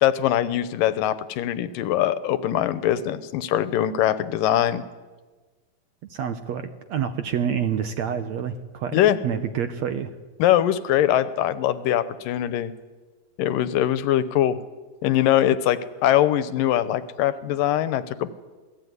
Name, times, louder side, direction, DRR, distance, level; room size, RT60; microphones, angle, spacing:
voice 1, 0.0-4.8 8.9-9.2 10.4-12.7 13.4-14.6 15.0-18.3, left 12 dB, 75° left, 14 dB, 2.5 m, -22 dB
voice 2, 6.1-10.1, right 8 dB, 65° right, 9 dB, 1.8 m, -28 dB
27.5 x 19.0 x 9.6 m, 1.3 s
omnidirectional pair, 4.2 m